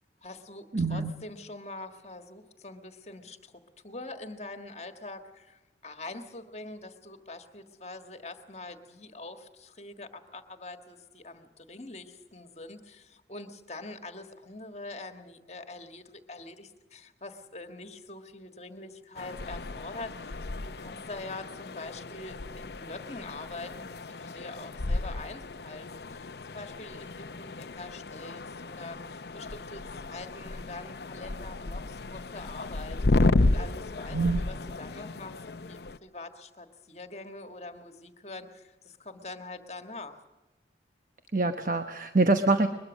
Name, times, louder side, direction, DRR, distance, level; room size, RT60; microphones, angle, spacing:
voice 1, 0.2-3.5 3.8-40.3, left 2 dB, 35° left, 7 dB, 1.6 m, -44 dB
voice 2, 0.7-1.1 34.1-34.4 41.3-42.7, right 3 dB, 45° right, 8 dB, 1.0 m, -25 dB
sound 1, 19.1-36.0, left 2 dB, 65° left, 0.7 m, -33 dB
22.5 x 21.5 x 6.3 m, 1.1 s
head